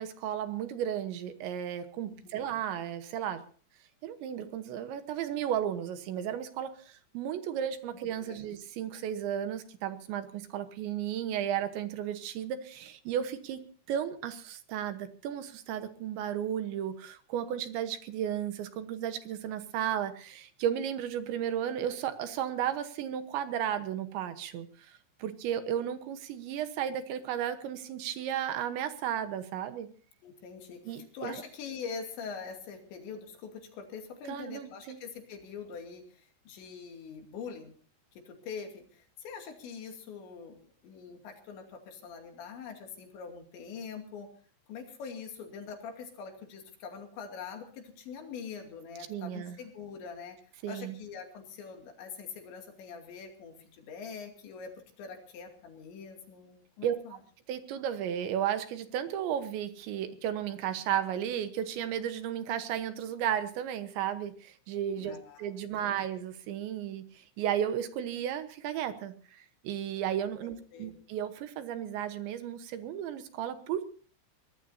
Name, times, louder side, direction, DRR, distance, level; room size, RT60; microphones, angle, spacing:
voice 1, 0.0-3.4 4.0-13.6 13.9-29.9 30.9-31.4 34.3-35.0 49.1-49.6 50.6-50.9 56.8-57.2 57.5-73.8, right 10 dB, 75° right, 10 dB, 3.3 m, -34 dB
voice 2, 2.0-2.5 8.2-8.5 30.2-37.7 38.1-44.3 44.7-50.4 50.7-57.2 65.0-65.5 65.8-65.9 70.4-71.0, left 6 dB, 70° left, 3 dB, 4.7 m, -44 dB
23.5 x 19.5 x 2.8 m, 0.42 s
omnidirectional pair, 5.5 m